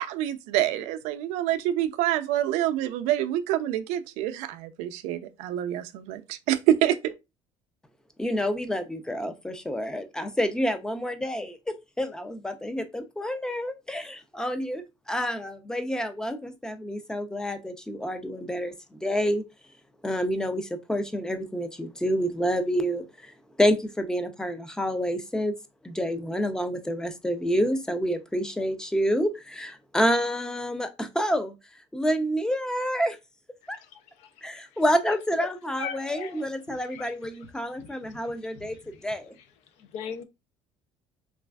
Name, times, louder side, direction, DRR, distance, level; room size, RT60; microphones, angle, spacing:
voice 1, 0.0-7.1, right 12 dB, 85° right, 0.4 m, -27 dB
voice 2, 8.2-19.4 20.0-23.0 23.6-25.5 25.8-31.5 31.9-33.2 33.7-33.8 34.4-38.8 39.0-39.3, equal, 5° left, 0.4 m, -28 dB
voice 3, 33.8-35.5 35.8-37.5 37.8-39.1 39.3-39.5 39.8-40.2, left 7 dB, 75° left, 0.5 m, -41 dB
3.2 x 2.3 x 2.2 m
cardioid pair, 120°, 12 cm